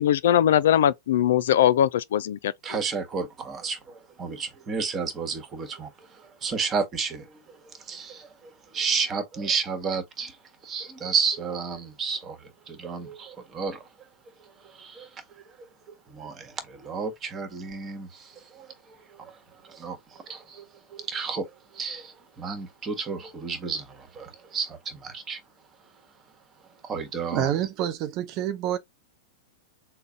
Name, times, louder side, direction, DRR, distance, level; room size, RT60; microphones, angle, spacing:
voice 1, 0.0-2.8, left 10 dB, 70° left, 0.3 m, -21 dB
voice 2, 2.6-5.9 6.4-7.4 7.9-8.3 8.7-10.3 10.6-12.4 12.7-13.8 14.8-15.1 16.1-18.3 18.5-18.7 19.2-19.3 19.7-20.0 20.3-20.6 20.9-21.5 21.7-25.4 26.8-27.5, right 5 dB, 25° right, 1.3 m, -31 dB
voice 3, 27.3-28.8, right 10 dB, 45° right, 0.6 m, -27 dB
3.9 x 2.2 x 3.5 m
hypercardioid pair, 105°, 0 cm